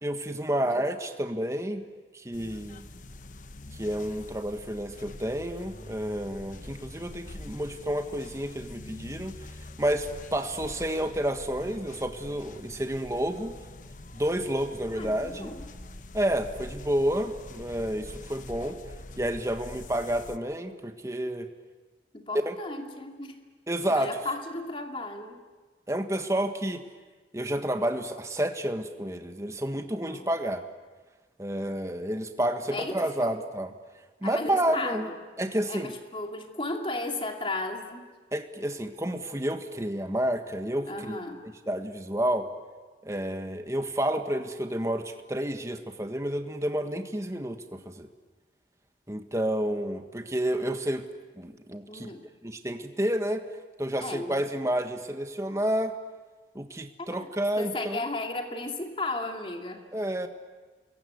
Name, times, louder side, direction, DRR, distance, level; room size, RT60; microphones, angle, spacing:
voice 1, 0.0-1.8 2.1-2.9 3.7-9.3 9.8-13.5 14.1-15.5 16.1-18.8 19.2-21.5 22.4-22.5 23.7-24.2 25.9-26.8 27.3-30.6 31.4-33.7 34.2-35.1 35.4-35.9 38.3-41.2 41.7-42.5 43.0-48.1 49.1-51.1 51.4-52.1 52.4-53.4 53.8-56.0 56.5-58.0 59.9-60.3, right 1 dB, 15° right, 7 dB, 1.5 m, -30 dB
sound 1, 2.3-20.4, left 2 dB, 45° left, 1.0 m, -45 dB
voice 2, 14.9-15.7 22.1-23.4 23.9-25.5 29.9-30.3 32.7-33.4 34.2-35.1 35.7-38.1 40.9-41.5 51.9-52.3 54.0-54.5 57.0-57.3 57.6-59.8, left 2 dB, 30° left, 4 dB, 2.5 m, -35 dB
28.0 x 22.5 x 9.5 m, 1.3 s
head